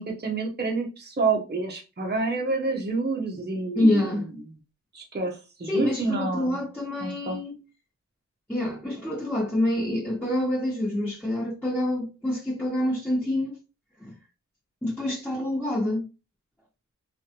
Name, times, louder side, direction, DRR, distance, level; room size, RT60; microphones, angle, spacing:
voice 1, 0.0-4.1 4.9-6.6 7.0-7.4, right 3 dB, 35° right, 0.8 m, -28 dB
voice 2, 3.7-4.3 5.7-7.6 8.5-13.6 14.0-14.1 14.8-16.1, left 1 dB, 5° left, 1.3 m, -26 dB
3.2 x 2.5 x 2.8 m
wide cardioid pair, 70°, 30 cm